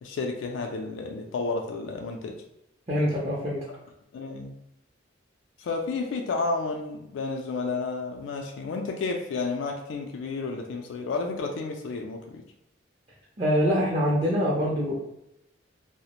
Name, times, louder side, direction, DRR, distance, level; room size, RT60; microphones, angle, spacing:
voice 1, 0.0-2.3 4.1-4.5 5.6-12.4, left 3 dB, 85° left, 2 dB, 0.3 m, -31 dB
voice 2, 2.9-3.6 13.4-15.0, equal, 35° right, -6 dB, 0.5 m, -24 dB
2.4 x 2.0 x 2.8 m, 0.82 s
head